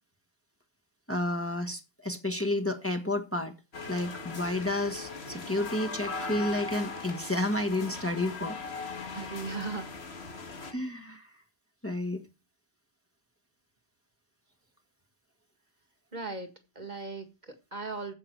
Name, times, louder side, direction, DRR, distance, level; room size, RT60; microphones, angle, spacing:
voice 1, 1.1-3.5 3.9-8.6 10.7-11.3 11.8-12.2, left 1 dB, 15° left, 1.4 m, -31 dB
sound 1, 3.7-10.7, left 4 dB, 85° left, 1.9 m, -39 dB
voice 2, 9.1-9.9 16.1-16.5 16.8-18.1, right 3 dB, 45° right, 1.9 m, -37 dB
15.0 x 5.9 x 4.5 m
omnidirectional pair, 1.0 m